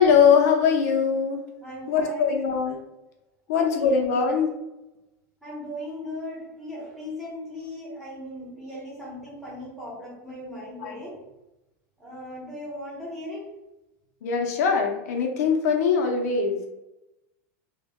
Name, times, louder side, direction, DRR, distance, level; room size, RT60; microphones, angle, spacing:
voice 1, 0.0-1.4 1.9-2.8 3.5-4.5 10.8-10.9 14.2-16.6, left 6 dB, 85° left, 2 dB, 0.5 m, -21 dB
voice 2, 1.6-2.4 3.5-4.1 5.4-11.2 12.0-13.5, left 1 dB, 5° right, -7 dB, 0.9 m, -37 dB
2.2 x 2.0 x 3.4 m, 0.95 s
supercardioid pair, 170°, 8 cm